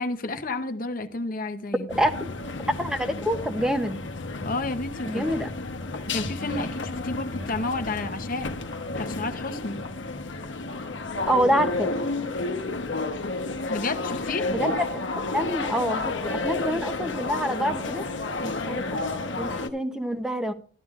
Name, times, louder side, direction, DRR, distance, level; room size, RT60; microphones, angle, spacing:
voice 1, 0.0-1.9 4.4-5.2 6.1-8.5 9.0-9.8 13.7-14.5, left 2 dB, 45° left, 0.8 m, -31 dB
sound 1, 1.9-19.7, left 3 dB, 75° left, 0.9 m, -31 dB
voice 2, 1.9-2.3 2.8-4.0 5.1-5.5 11.3-12.0 14.5-14.9 15.2-18.0 18.4-19.0 19.4-20.5, equal, 5° right, 0.7 m, -26 dB
13.5 x 11.0 x 2.4 m
head